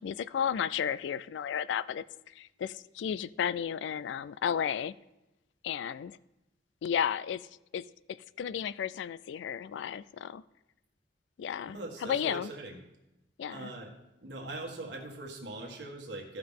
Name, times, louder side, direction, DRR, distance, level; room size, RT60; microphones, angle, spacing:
voice 1, 0.0-4.9 5.6-6.2 6.8-7.5 7.7-10.4 11.4-12.5 13.4-13.7, left 8 dB, 75° left, 17 dB, 0.3 m, -33 dB
voice 2, 11.6-12.8 13.5-13.9 14.2-16.4, right 2 dB, 70° right, 0 dB, 1.6 m, -41 dB
14.5 x 5.8 x 3.7 m, 0.95 s
head